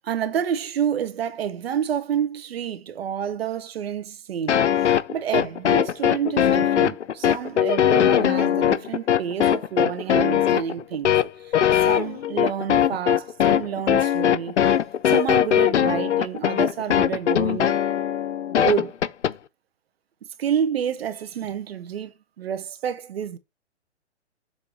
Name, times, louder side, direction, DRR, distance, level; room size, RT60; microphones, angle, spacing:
voice 1, 0.0-4.6 5.1-11.2 11.8-14.6 15.1-17.8 18.6-18.9 20.4-23.4, right 8 dB, 60° right, 1.1 m, -28 dB
sound 1, 4.5-19.3, left 10 dB, 85° left, 0.6 m, -20 dB
7.2 x 3.0 x 5.3 m
hypercardioid pair, 135°, 34 cm